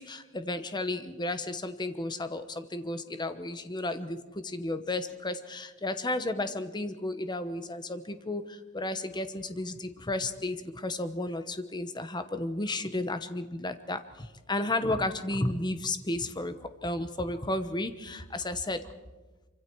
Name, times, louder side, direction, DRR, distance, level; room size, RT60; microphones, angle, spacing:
voice 1, 0.0-18.9, left 2 dB, 20° left, 10 dB, 1.0 m, -33 dB
25.5 x 25.0 x 4.7 m, 1.2 s
head